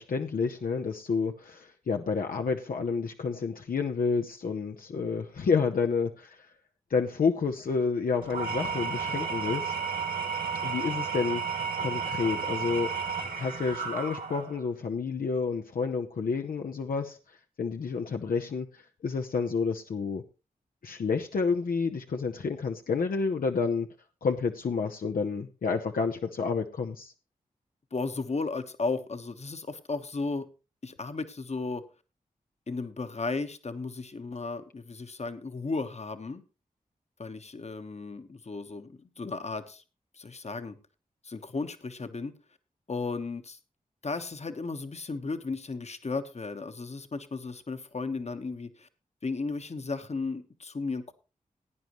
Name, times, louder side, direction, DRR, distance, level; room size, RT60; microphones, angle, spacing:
voice 1, 0.0-6.4 6.9-9.7 10.6-11.4 11.8-12.9 13.4-17.2 17.6-20.2 20.8-23.9 24.2-27.1, left 5 dB, 75° left, 4 dB, 0.8 m, -29 dB
Engine / Tools, 8.2-14.6, right 6 dB, 85° right, 2.1 m, -32 dB
voice 2, 27.9-30.5 30.8-31.8 32.7-36.4 37.2-39.8 40.1-40.8 41.2-42.3 42.9-43.6 44.0-48.9 49.2-51.1, left 3 dB, 45° left, 9 dB, 1.2 m, -35 dB
17.0 x 9.2 x 3.1 m, 0.30 s
cardioid pair, 50°, 15 cm